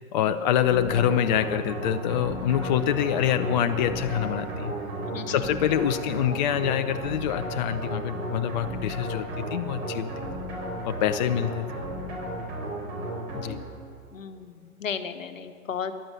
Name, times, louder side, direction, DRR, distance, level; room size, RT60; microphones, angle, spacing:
voice 1, 0.1-4.7 5.3-10.1 10.8-11.8 13.3-13.6, left 10 dB, 35° left, 9 dB, 0.5 m, -26 dB
sound 1, 0.6-13.8, right 1 dB, 40° right, 4.3 m, -34 dB
Bowed string instrument, 2.8-7.2, right 8 dB, 85° right, 0.7 m, -44 dB
voice 2, 5.0-5.6 14.1-15.9, left 7 dB, 65° left, 10 dB, 1.1 m, -35 dB
15.0 x 11.5 x 6.4 m, 2.2 s
figure-of-eight pair, 105°, 41 cm